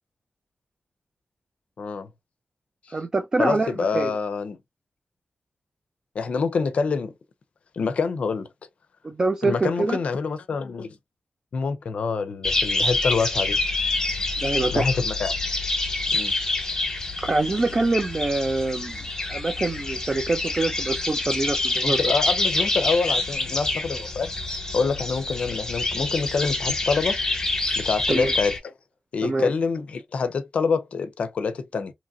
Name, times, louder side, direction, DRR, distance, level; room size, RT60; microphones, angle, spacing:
voice 1, 1.8-2.1 2.9-3.0 3.4-4.6 6.1-7.1 7.7-8.5 9.4-11.0 11.5-13.6 14.7-15.3 16.1-16.3 21.8-24.3 24.7-27.2 27.8-28.7 29.1-31.9, left 4 dB, 75° left, 0.5 m, -26 dB
voice 2, 2.9-4.1 9.0-10.0 14.4-14.9 17.2-22.0 28.1-28.3 29.2-29.5, right 3 dB, 30° right, 0.4 m, -25 dB
sound 1, 12.4-28.6, left 2 dB, 25° left, 1.0 m, -27 dB
2.8 x 2.7 x 2.3 m
wide cardioid pair, 145°, 2 cm